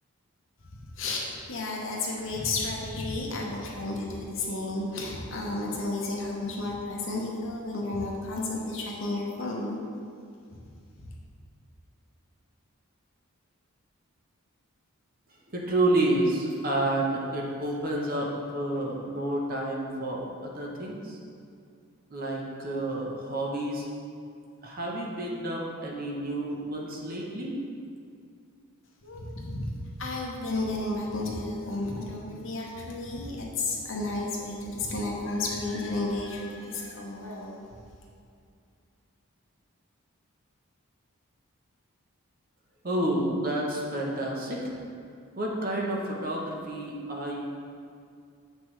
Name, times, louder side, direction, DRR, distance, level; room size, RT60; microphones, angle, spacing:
voice 1, 1.0-9.8 11.0-11.1 29.0-37.6, left 2 dB, 60° left, -2 dB, 1.0 m, -32 dB
voice 2, 15.5-21.2 22.1-23.9 24.6-27.6 42.8-44.6 45.4-47.4, right 1 dB, 40° right, -2 dB, 0.9 m, -29 dB
7.2 x 6.0 x 3.3 m, 2.4 s
head